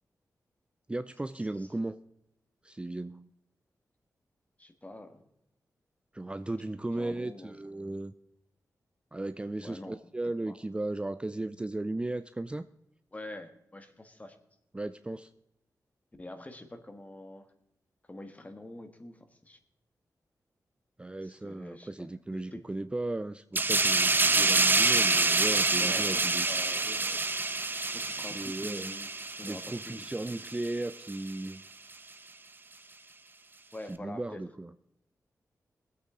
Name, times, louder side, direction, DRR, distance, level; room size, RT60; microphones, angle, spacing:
voice 1, 0.9-2.0 2.6-3.3 6.1-8.1 9.1-12.7 14.7-15.3 21.0-26.5 28.3-28.9 29.4-31.6 33.9-34.7, right 2 dB, 15° right, 11 dB, 0.4 m, -36 dB
voice 2, 4.6-5.2 6.9-8.0 9.6-10.0 10.5-10.6 13.1-14.4 16.2-17.5 18.1-19.6 21.2-22.7 25.8-27.2 27.8-29.1 29.4-30.5 33.7-34.4, left 1 dB, 25° left, 8 dB, 1.6 m, -46 dB
sound 1, 23.5-30.7 31.1-31.3, right 3 dB, 30° right, 0.8 m, -27 dB
20.0 x 8.4 x 3.8 m, 0.83 s
cardioid pair, 80°, 6 cm